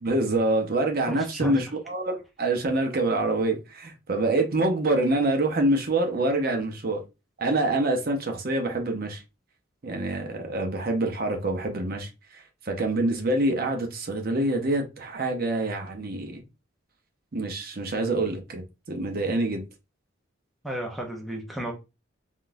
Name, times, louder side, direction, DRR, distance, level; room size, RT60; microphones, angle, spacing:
voice 1, 0.0-7.0 7.4-9.2 9.8-16.4 17.3-18.6 18.9-19.6, right 2 dB, 45° right, 0.6 m, -26 dB
voice 2, 1.1-1.6 20.6-21.7, right 1 dB, ahead, 0.5 m, -32 dB
3.7 x 2.3 x 2.5 m
head